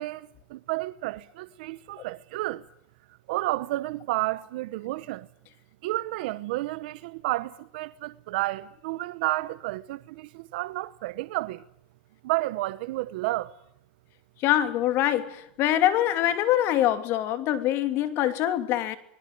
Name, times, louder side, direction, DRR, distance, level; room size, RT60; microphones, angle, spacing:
voice 1, 0.0-2.6 3.3-5.3 5.8-11.6 12.2-13.5, right 18 dB, 70° right, 1.1 m, -31 dB
voice 2, 14.4-19.0, left 12 dB, 45° left, 3.0 m, -24 dB
24.0 x 22.5 x 9.4 m
supercardioid pair, 135°, 5 cm